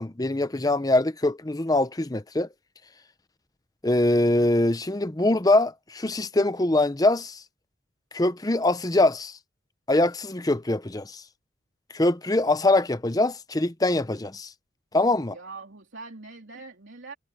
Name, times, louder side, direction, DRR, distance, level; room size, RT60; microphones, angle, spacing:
voice 1, 0.0-2.5 3.8-7.4 8.1-9.4 9.9-11.2 11.9-14.5 14.9-15.4, left 2 dB, 20° left, 0.7 m, -23 dB
voice 2, 15.2-17.1, right 3 dB, 80° right, 3.1 m, -43 dB
head